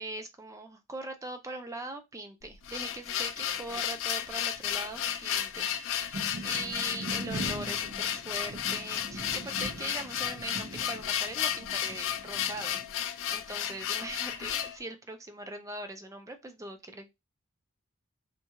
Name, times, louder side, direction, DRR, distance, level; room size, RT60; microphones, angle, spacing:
voice 1, 0.0-17.1, right 2 dB, 15° right, 0.4 m, -41 dB
sound 1, 2.4-14.8, left 10 dB, 60° left, 0.3 m, -33 dB
sound 2, 6.1-12.8, right 1 dB, 50° right, 0.7 m, -42 dB
2.5 x 2.3 x 2.8 m
head